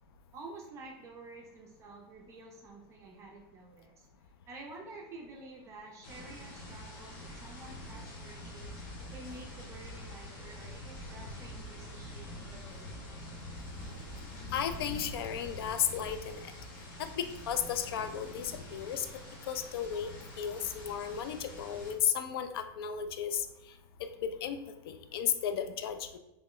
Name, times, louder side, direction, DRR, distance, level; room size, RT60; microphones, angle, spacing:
voice 1, 0.3-4.1 4.5-8.7 9.1-13.1, right 2 dB, 25° right, 0 dB, 0.4 m, -50 dB
sound 1, 6.0-21.9, left 1 dB, 55° left, 1.0 m, -45 dB
voice 2, 14.5-16.5 17.0-19.1 19.5-20.1 20.4-23.5 24.2-24.6 24.9-26.2, left 8 dB, 75° left, 9 dB, 0.4 m, -34 dB
3.0 x 2.1 x 3.7 m, 0.94 s
supercardioid pair, 150°, 13 cm